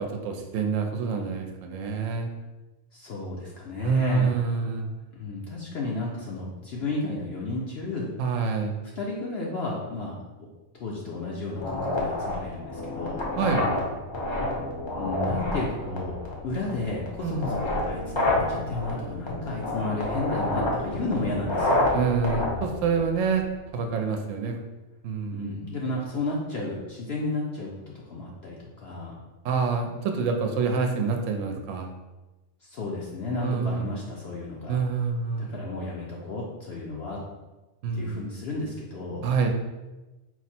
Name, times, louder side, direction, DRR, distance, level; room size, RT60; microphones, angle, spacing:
voice 1, 0.0-2.3 3.8-4.9 8.2-8.8 13.4-13.7 17.2-17.5 21.9-23.4 23.7-24.6 25.0-25.8 29.4-31.9 33.4-33.9 34.7-35.5 37.8-38.1 39.2-39.5, right 5 dB, 75° right, 4 dB, 0.9 m, -27 dB
voice 2, 2.9-4.3 5.1-8.1 9.0-10.2 10.8-13.2 14.9-16.1 16.4-22.0 25.3-29.2 32.6-34.8 35.4-37.2 37.9-39.2, left 2 dB, 60° left, -3 dB, 0.8 m, -32 dB
sound 1, 11.6-23.5, left 1 dB, 30° left, 0.5 m, -29 dB
4.5 x 2.0 x 4.2 m, 1.1 s
omnidirectional pair, 1.4 m